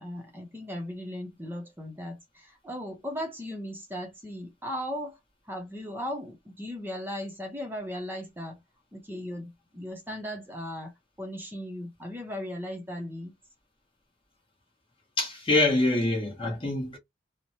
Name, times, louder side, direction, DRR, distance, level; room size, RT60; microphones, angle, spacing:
voice 1, 0.0-5.2 5.5-8.6 8.9-10.9 11.2-13.3, equal, 10° right, 0.6 m, -37 dB
voice 2, 15.2-17.0, left 2 dB, 30° left, 1.0 m, -25 dB
3.1 x 2.1 x 2.7 m
head